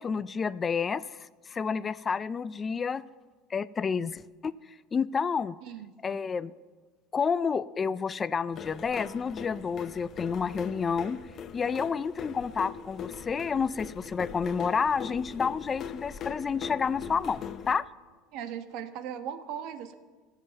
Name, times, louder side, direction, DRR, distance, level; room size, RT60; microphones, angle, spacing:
voice 1, 0.0-3.0 3.5-4.5 4.9-5.6 6.0-6.5 7.1-11.2 11.5-17.9, left 6 dB, 25° left, 17 dB, 0.3 m, -30 dB
voice 2, 5.6-6.2 18.3-19.9, right 9 dB, 60° right, 10 dB, 1.2 m, -38 dB
sound 1, 8.5-17.7, left 7 dB, 40° left, 0.7 m, -41 dB
15.5 x 7.5 x 7.9 m, 1.4 s
supercardioid pair, 130°, 0 cm